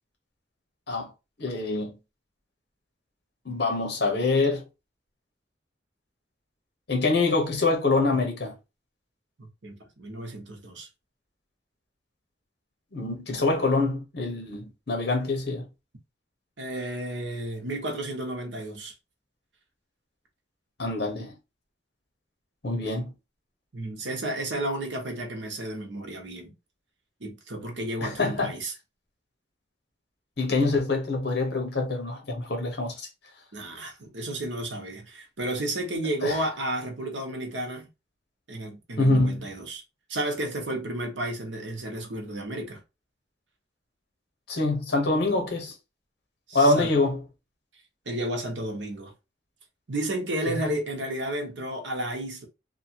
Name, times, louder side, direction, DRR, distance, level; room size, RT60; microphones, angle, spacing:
voice 1, 1.4-1.9 3.4-4.6 6.9-8.5 12.9-15.6 20.8-21.3 22.6-23.1 28.0-28.5 30.4-32.9 36.2-36.4 39.0-39.4 44.5-45.7 46.5-47.2 50.4-50.6, left 2 dB, 65° left, 1.0 m, -25 dB
voice 2, 9.4-10.9 16.6-18.9 22.7-22.9 23.7-26.5 27.2-28.7 33.5-37.9 38.5-39.8 40.1-42.8 46.5-46.9 48.1-49.1 49.9-52.5, right 1 dB, 90° right, 1.0 m, -32 dB
2.9 x 2.4 x 2.7 m
head